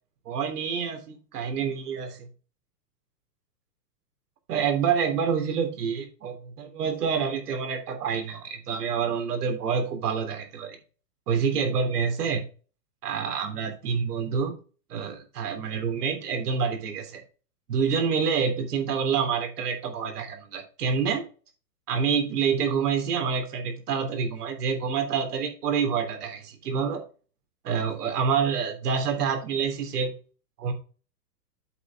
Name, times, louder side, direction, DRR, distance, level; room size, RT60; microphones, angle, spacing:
voice 1, 0.2-2.3 4.5-10.8 11.3-12.4 13.0-14.5 14.9-17.2 17.7-21.2 21.9-27.0 27.6-30.1 30.6-30.7, right 6 dB, 65° right, 5 dB, 3.4 m, -27 dB
8.7 x 5.2 x 4.9 m, 0.36 s
hypercardioid pair, 155°, 49 cm